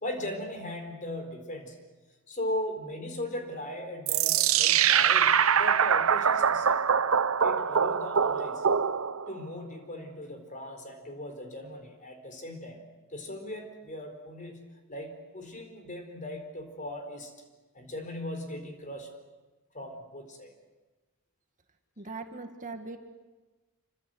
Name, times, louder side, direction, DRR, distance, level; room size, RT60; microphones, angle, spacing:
voice 1, 0.0-1.8 2.3-6.8 7.4-8.7 9.3-12.8 13.1-17.3 17.7-19.1 19.7-20.5, left 1 dB, 35° left, 5 dB, 4.3 m, -38 dB
sound 1, 4.1-9.4, right 7 dB, 75° right, 0.8 m, -24 dB
voice 2, 22.0-23.0, right 3 dB, 35° right, 5 dB, 2.0 m, -40 dB
27.5 x 24.5 x 7.9 m, 1.2 s
head